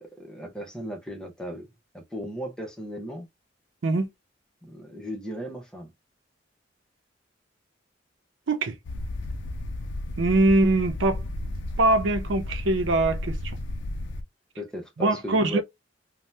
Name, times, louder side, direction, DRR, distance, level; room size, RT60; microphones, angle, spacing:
voice 1, 0.0-1.7 1.9-3.3 4.6-5.9 14.6-15.6, right 1 dB, 5° left, 0.8 m, -36 dB
sound 1, 8.8-14.2, left 1 dB, 75° left, 0.5 m, -33 dB
voice 2, 10.2-11.2 11.8-13.4 15.0-15.6, right 2 dB, 85° right, 0.6 m, -22 dB
2.7 x 2.2 x 3.2 m
head